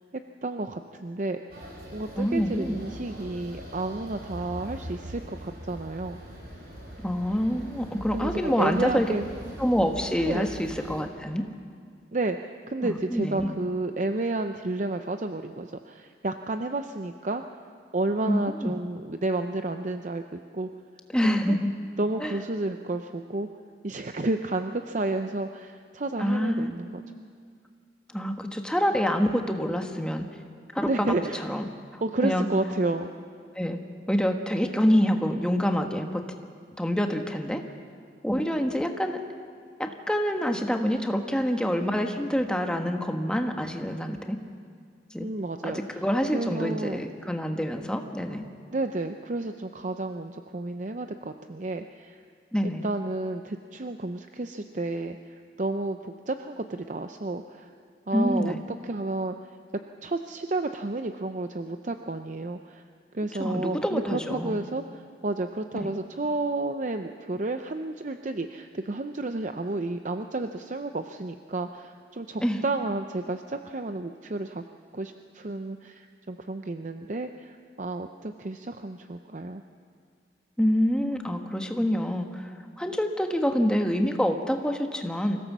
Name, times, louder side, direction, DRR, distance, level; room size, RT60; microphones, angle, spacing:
voice 1, 0.4-1.4 1.9-6.2 8.1-9.3 10.2-10.5 12.1-17.4 17.9-20.7 21.2-21.6 22.0-23.5 23.8-27.0 30.9-31.5 32.0-33.1 45.2-45.8 46.3-47.0 48.7-52.2 52.6-57.7 58.1-58.5 58.8-59.4 60.0-62.8 63.1-74.6 74.9-79.6, right 2 dB, 45° right, 7 dB, 0.6 m, -31 dB
sound 1, 1.5-11.0, equal, 60° right, 4.7 m, -42 dB
voice 2, 2.2-2.8 7.0-9.1 9.6-11.5 12.8-13.6 18.3-18.7 21.1-21.7 22.2-22.4 26.2-26.7 28.1-30.2 30.7-30.9 31.4-31.6 32.2-32.5 33.5-33.8 34.1-36.2 36.8-37.6 38.2-39.2 39.8-44.4 45.1-45.3 45.6-48.5 52.5-52.8 58.1-58.6 63.4-64.6 65.8-65.9 72.4-72.6 80.6-82.5 82.8-85.4, equal, 5° left, 4 dB, 1.3 m, -26 dB
25.0 x 16.5 x 7.3 m, 2.2 s
head